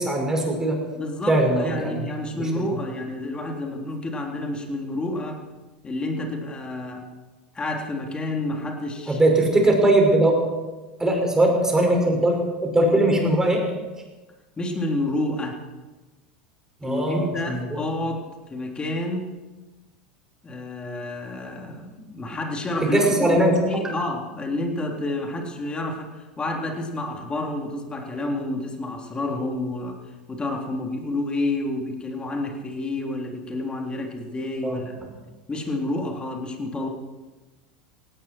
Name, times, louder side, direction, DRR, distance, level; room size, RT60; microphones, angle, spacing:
voice 1, 0.0-0.8 1.3-2.0 9.1-10.3 11.0-13.6 16.8-17.8 22.8-23.5 34.6-34.8, right 1 dB, 10° right, 1 dB, 5.7 m, -20 dB
voice 2, 1.0-5.4 5.8-7.1 7.5-9.2 14.6-15.6 16.8-19.3 20.4-30.0 30.3-34.9 35.5-36.9, left 2 dB, 20° left, 2 dB, 3.6 m, -29 dB
18.0 x 17.5 x 4.6 m, 1.2 s
hypercardioid pair, 90°, 5 cm